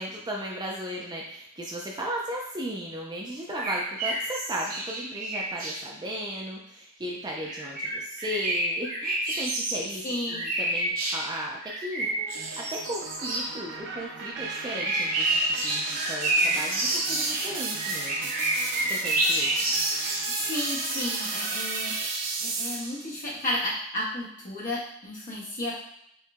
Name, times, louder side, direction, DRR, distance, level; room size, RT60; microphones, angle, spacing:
voice 1, 0.0-12.1 12.6-18.3 18.9-19.6, right 1 dB, 20° right, -2 dB, 0.6 m, -36 dB
sound 1, 3.5-5.8 7.4-9.8 10.3-11.2 11.6-13.5 14.8-21.3, right 1 dB, 45° right, 1.1 m, -29 dB
voice 2, 10.0-10.4 20.3-21.9 22.4-25.7, left 1 dB, 40° left, -6 dB, 1.5 m, -32 dB
sound 2, 12.0-23.1, right 4 dB, 60° right, 0.7 m, -34 dB
4.6 x 3.1 x 3.6 m, 0.72 s
head